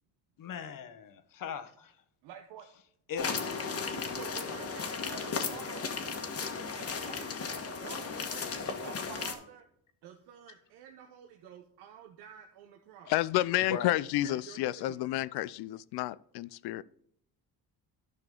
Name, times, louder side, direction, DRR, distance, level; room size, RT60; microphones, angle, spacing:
voice 1, 0.4-1.9 3.1-3.5 6.7-6.8 13.7-14.0, left 6 dB, 55° left, 11 dB, 1.1 m, -39 dB
voice 2, 2.2-2.6 4.1-7.3 7.7-9.7 10.0-13.1 13.7-13.9 14.2-15.0, right 9 dB, 85° right, 3 dB, 1.0 m, -49 dB
sound 1, 3.2-9.3, left 5 dB, 35° left, 1.4 m, -35 dB
voice 3, 13.1-16.8, left 15 dB, 75° left, 20 dB, 0.5 m, -30 dB
11.0 x 5.8 x 3.8 m, 0.71 s
cardioid pair, 100°, 39 cm